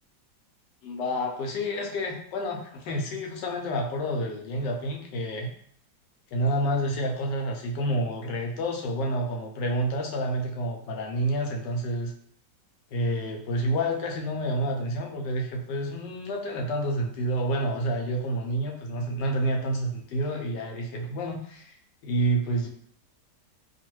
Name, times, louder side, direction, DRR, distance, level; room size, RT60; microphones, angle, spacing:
voice 1, 0.8-5.5 6.3-12.1 12.9-21.8 22.0-22.7, right 1 dB, 80° left, 1 dB, 1.2 m, -29 dB
2.8 x 2.3 x 3.0 m, 0.64 s
omnidirectional pair, 1.9 m